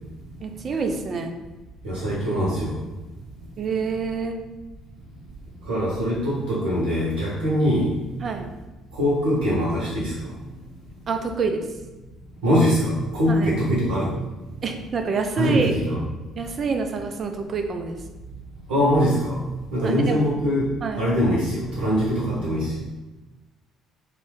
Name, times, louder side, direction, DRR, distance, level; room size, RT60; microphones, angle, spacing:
voice 1, 0.4-1.3 3.6-4.4 8.2-8.5 11.1-11.7 13.3-13.5 14.6-15.7 16.4-18.0 19.8-20.3 20.8-21.1, right 4 dB, 45° right, 5 dB, 0.4 m, -27 dB
voice 2, 1.8-2.8 5.7-7.9 9.0-10.1 12.4-14.1 15.3-16.0 18.7-19.4 19.7-22.7, equal, 70° right, -7 dB, 0.8 m, -22 dB
3.1 x 2.1 x 3.0 m, 1.2 s
figure-of-eight pair, 50°, 0 cm